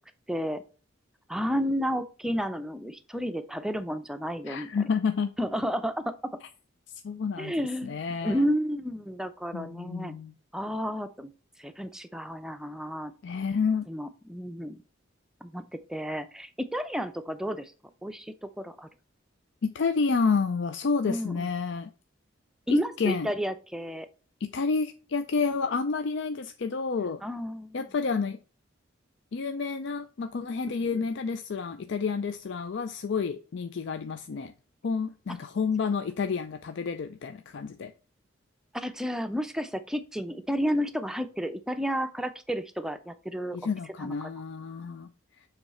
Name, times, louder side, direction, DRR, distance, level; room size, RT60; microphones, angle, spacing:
voice 1, 0.3-0.6 1.3-4.7 5.4-6.4 7.4-10.1 10.5-11.3 11.6-13.1 13.9-14.8 15.4-15.6 15.9-17.7 18.0-18.9 21.1-21.5 22.7-24.1 27.2-27.8 30.8-31.0 38.7-43.6 44.0-44.3, equal, 5° right, 0.5 m, -31 dB
voice 2, 4.5-5.3 7.0-8.4 9.5-10.3 13.2-13.9 19.6-21.9 22.7-23.3 24.4-27.2 27.7-28.4 29.3-34.5 34.8-37.9 43.5-45.1, left 5 dB, 60° left, 0.4 m, -29 dB
7.3 x 3.2 x 4.3 m
head